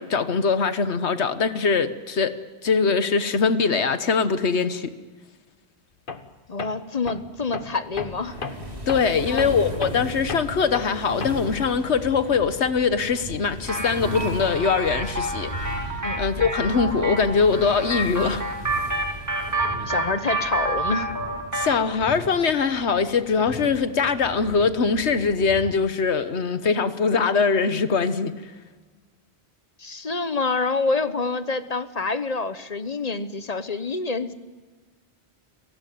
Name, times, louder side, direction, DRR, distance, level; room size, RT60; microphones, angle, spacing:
voice 1, 0.0-2.3 2.6-4.9 8.9-18.4 21.5-28.3, left 5 dB, 90° left, 11 dB, 1.5 m, -22 dB
Tools, 6.1-6.3 6.6-11.6, left 5 dB, 55° left, 1.4 m, -35 dB
voice 2, 6.5-8.4 9.2-9.6 16.0-16.2 19.9-21.1 29.8-34.3, left 3 dB, 40° left, 12 dB, 1.1 m, -27 dB
sound 1, 7.9-25.7, equal, 35° right, 4.3 m, -37 dB
sound 2, 13.7-21.8, right 2 dB, 15° right, 2.4 m, -29 dB
30.0 x 17.0 x 9.4 m, 1.4 s
omnidirectional pair, 1.1 m